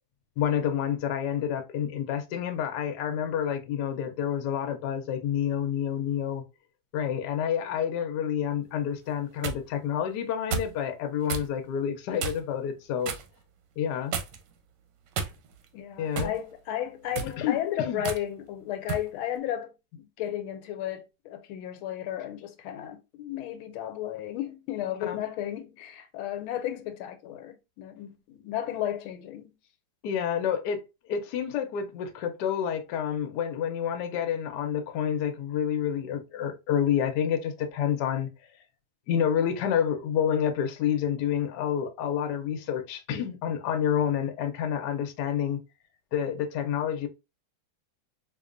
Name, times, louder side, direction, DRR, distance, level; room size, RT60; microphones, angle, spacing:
voice 1, 0.4-6.4 6.9-13.1 13.8-14.1 16.0-16.3 17.4-18.0 25.1-25.2 30.0-30.8 31.1-38.3 39.1-45.6 46.1-47.1, left 9 dB, 70° left, 1.1 m, -28 dB
sound 1, 9.1-9.6 10.5-10.8 11.3-11.5 12.2-12.5 13.0-13.3 14.1-14.5 15.1-15.7 16.2-16.4 17.0-17.4 18.0-18.2 18.9-19.1, right 6 dB, 70° right, 1.2 m, -32 dB
voice 2, 15.7-29.5, left 11 dB, 85° left, 1.5 m, -34 dB
4.1 x 2.8 x 2.5 m
omnidirectional pair, 2.2 m